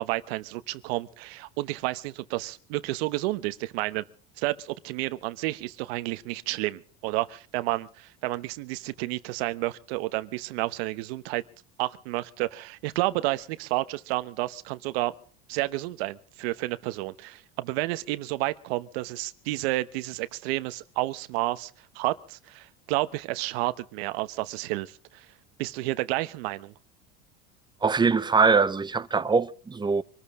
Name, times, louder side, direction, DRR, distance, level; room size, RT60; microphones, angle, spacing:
voice 1, 0.0-4.0 4.4-11.4 11.8-15.1 15.5-25.2 25.6-26.7, right 19 dB, 85° right, 1.1 m, -30 dB
voice 2, 27.8-30.0, right 4 dB, 15° right, 0.7 m, -22 dB
25.0 x 14.0 x 3.7 m
cardioid pair, 130°, 30 cm